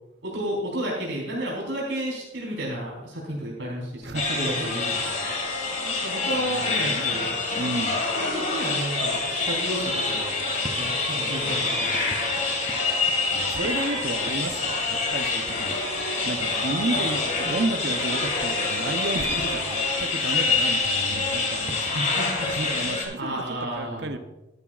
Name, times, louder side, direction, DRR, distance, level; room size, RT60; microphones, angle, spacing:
voice 1, 0.2-5.2 5.9-7.3 7.8-7.9 8.1-10.3 10.7-12.1 16.9-17.0 17.4-17.6 21.9-24.1, right 1 dB, 85° right, -4 dB, 4.3 m, -32 dB
voice 2, 4.0-4.7 5.7-6.0 6.3-7.1 7.6-8.0 13.3-15.8 16.3-21.8 22.5-23.3 23.6-24.2, right 2 dB, 65° right, 8 dB, 0.8 m, -32 dB
sound 1, 4.1-23.0, left 3 dB, 40° left, 2.1 m, -26 dB
sound 2, 9.0-22.8, right 3 dB, 25° right, 0.7 m, -40 dB
13.0 x 12.0 x 2.5 m, 1.0 s
head